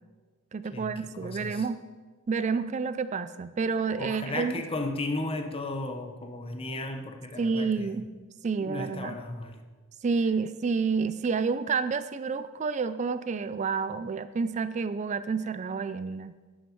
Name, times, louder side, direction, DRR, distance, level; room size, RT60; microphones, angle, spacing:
voice 1, 0.5-1.8 2.3-4.6 7.4-8.1 8.4-9.2 10.0-16.3, right 5 dB, 35° right, 13 dB, 0.3 m, -29 dB
voice 2, 1.2-1.6 4.0-8.2 8.6-9.6, left 2 dB, 25° left, 6 dB, 0.8 m, -35 dB
11.5 x 9.6 x 4.5 m, 1.4 s
head